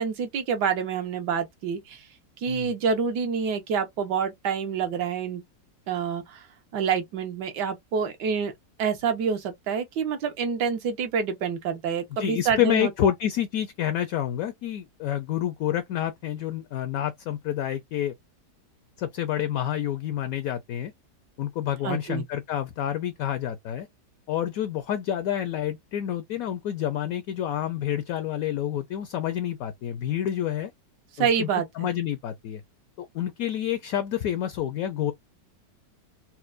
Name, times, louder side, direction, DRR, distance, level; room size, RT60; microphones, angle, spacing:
voice 1, 0.0-2.1 2.4-5.4 5.9-6.5 6.7-8.5 8.8-13.1 21.8-22.2 31.1-31.9, right 6 dB, 75° right, 1.4 m, -27 dB
voice 2, 12.2-18.1 19.0-20.9 21.4-23.9 24.3-30.7 31.2-31.5 31.7-32.6 33.0-35.1, left 11 dB, 75° left, 0.8 m, -28 dB
4.3 x 2.2 x 2.4 m
omnidirectional pair, 1.9 m